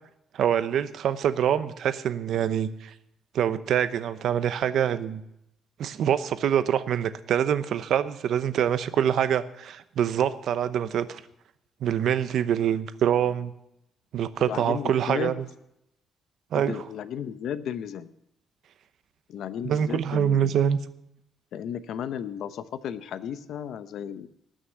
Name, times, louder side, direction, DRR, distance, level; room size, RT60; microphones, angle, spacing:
voice 1, 0.3-2.9 3.3-5.2 5.8-11.2 11.8-13.5 14.1-15.3 16.5-16.8 19.6-20.8, right 9 dB, 65° right, 12 dB, 0.8 m, -25 dB
voice 2, 14.4-15.3 16.5-18.1 19.3-20.6 21.5-24.3, left 9 dB, 65° left, 13 dB, 0.8 m, -34 dB
18.5 x 6.5 x 8.0 m, 0.81 s
cardioid pair, 155°, 0 cm